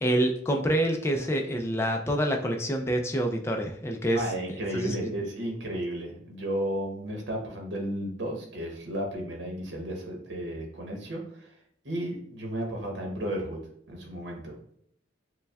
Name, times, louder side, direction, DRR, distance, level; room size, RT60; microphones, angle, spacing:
voice 1, 0.0-4.2 4.7-5.1, right 1 dB, 15° left, 3 dB, 0.4 m, -27 dB
voice 2, 4.1-11.5 11.8-13.6 13.9-14.5, right 1 dB, 70° right, 0 dB, 0.9 m, -33 dB
6.6 x 2.2 x 2.3 m, 0.69 s
head